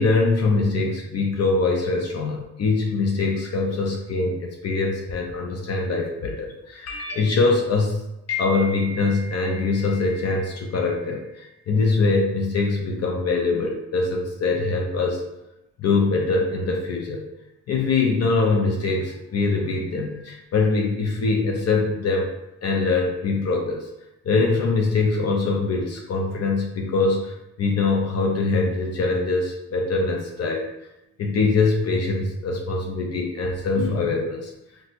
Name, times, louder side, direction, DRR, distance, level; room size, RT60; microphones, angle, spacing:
voice 1, 0.0-8.0 8.3-15.2 15.8-17.3 17.7-22.3 22.6-23.8 24.3-30.7 31.2-34.5, left 3 dB, 55° left, 0 dB, 0.5 m, -23 dB
4.1 x 2.3 x 2.5 m, 0.90 s
cardioid pair, 105°, 30 cm